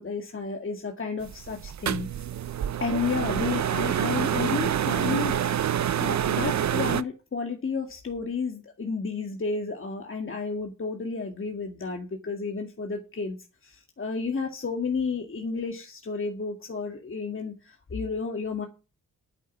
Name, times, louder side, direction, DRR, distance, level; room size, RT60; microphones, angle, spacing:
voice 1, 0.0-2.3 2.8-13.4 13.6-18.7, left 4 dB, 40° left, 4 dB, 2.1 m, -32 dB
sound 1, 1.2-7.0, right 10 dB, 60° right, 0.8 m, -27 dB
9.8 x 8.3 x 7.2 m, 0.33 s
cardioid pair, 75°, 32 cm